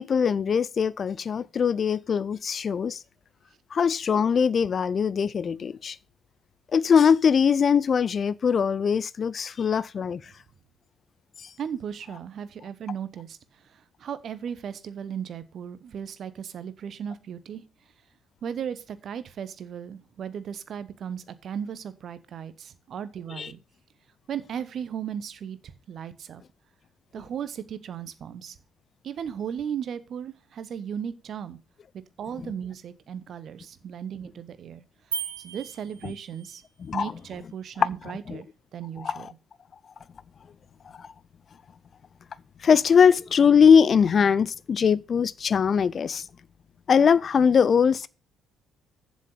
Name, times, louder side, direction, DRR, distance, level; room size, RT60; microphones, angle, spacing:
voice 1, 0.0-3.0 3.7-6.0 6.7-10.2 23.4-23.5 32.4-32.5 36.8-37.1 38.3-38.4 39.0-39.2 41.0-41.1 42.6-46.3 46.9-48.1, left 6 dB, 40° left, 0.5 m, -21 dB
voice 2, 11.6-17.6 18.4-23.6 24.3-26.4 27.1-28.6 29.0-31.6 31.9-34.8 35.1-36.6 36.9-38.5 38.7-39.3, right 8 dB, 50° right, 1.0 m, -36 dB
sound 1, 35.1-36.7, right 7 dB, 80° right, 0.8 m, -36 dB
7.5 x 6.4 x 7.9 m
figure-of-eight pair, 50°, 0 cm